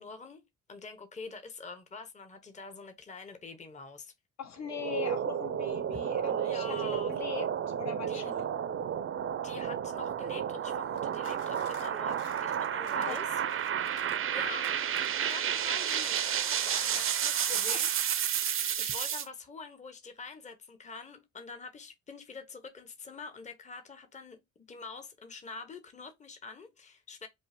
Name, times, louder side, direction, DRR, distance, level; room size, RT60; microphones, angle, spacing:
voice 1, 0.0-4.1 6.4-7.1 8.1-8.3 9.3-13.4 14.3-18.3 18.8-24.4 24.7-27.3, left 4 dB, 25° left, 0.9 m, -45 dB
voice 2, 4.4-8.5 13.1-13.2 16.9-17.0 17.7-17.8, left 9 dB, 60° left, 1.1 m, -41 dB
sound 1, 4.6-19.3, right 9 dB, 45° right, 0.6 m, -31 dB
sound 2, 10.9-14.3 14.6-16.4 16.7-16.9, left 8 dB, 90° left, 0.8 m, -51 dB
5.3 x 2.0 x 3.3 m
cardioid pair, 90°, 30 cm